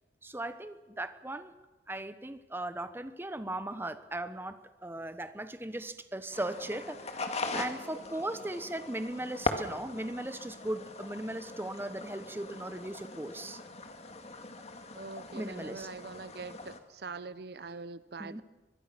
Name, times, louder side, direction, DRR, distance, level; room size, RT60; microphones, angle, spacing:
voice 1, 0.2-1.5 1.9-13.6 15.3-15.9 18.2-18.4, right 1 dB, 15° right, 11 dB, 1.1 m, -38 dB
sound 1, 6.3-16.8, left 3 dB, 40° left, 2.0 m, -40 dB
voice 2, 14.9-18.4, right 4 dB, 60° right, 15 dB, 0.7 m, -43 dB
23.5 x 22.0 x 6.0 m, 1.2 s
head